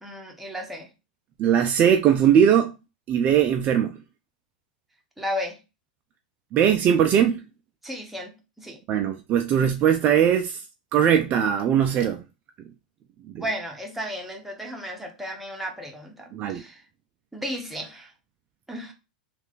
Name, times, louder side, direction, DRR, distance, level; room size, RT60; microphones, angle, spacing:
voice 1, 0.0-0.9 5.2-5.6 7.8-8.8 13.4-16.8 17.3-18.1 18.7-18.9, equal, 5° right, 1.0 m, -34 dB
voice 2, 1.4-2.7 3.1-4.0 6.5-7.4 8.9-10.6 10.9-12.2 13.3-13.4 16.3-16.6, right 9 dB, 35° right, 0.4 m, -20 dB
3.2 x 2.4 x 3.8 m
hypercardioid pair, 110°, 5 cm